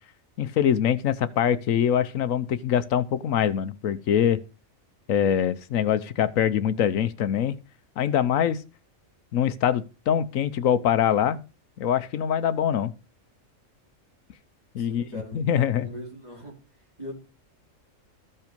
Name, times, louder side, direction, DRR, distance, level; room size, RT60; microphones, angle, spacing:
voice 1, 0.4-4.4 5.1-7.6 8.0-8.6 9.3-11.4 11.8-12.9 14.7-15.0 15.3-15.9, left 9 dB, 80° left, 1.1 m, -23 dB
voice 2, 14.8-16.6 17.0-17.1, equal, 30° right, 4.8 m, -40 dB
14.0 x 5.6 x 5.2 m
omnidirectional pair, 1.4 m